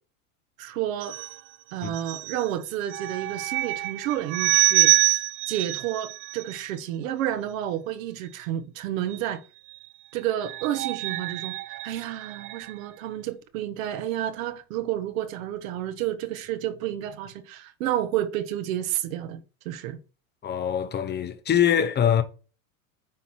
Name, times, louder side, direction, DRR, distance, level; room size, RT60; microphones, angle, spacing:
voice 1, 0.6-1.2 1.7-5.2 5.5-9.4 10.1-20.0, right 12 dB, 65° right, 1.4 m, -30 dB
sound 1, 1.0-6.7 9.1-9.2 9.6-12.8 17.1-17.3, right 18 dB, 30° right, 0.4 m, -27 dB
voice 2, 20.4-22.2, left 9 dB, 25° left, 0.8 m, -23 dB
9.4 x 4.1 x 4.4 m
hypercardioid pair, 105°, 43 cm